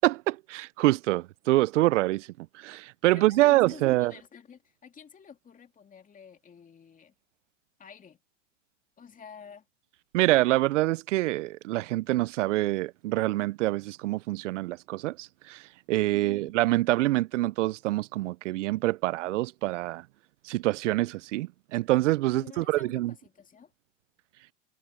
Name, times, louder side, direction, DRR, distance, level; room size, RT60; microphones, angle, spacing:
voice 1, 0.0-2.3 2.5-4.1 10.1-15.6 15.9-20.0 20.4-23.1, right 18 dB, 80° right, 0.5 m, -26 dB
voice 2, 3.1-7.1 7.8-8.2 9.0-9.6 16.0-16.5 22.3-23.7, left 7 dB, 20° left, 2.6 m, -50 dB
hypercardioid pair, 110°, 36 cm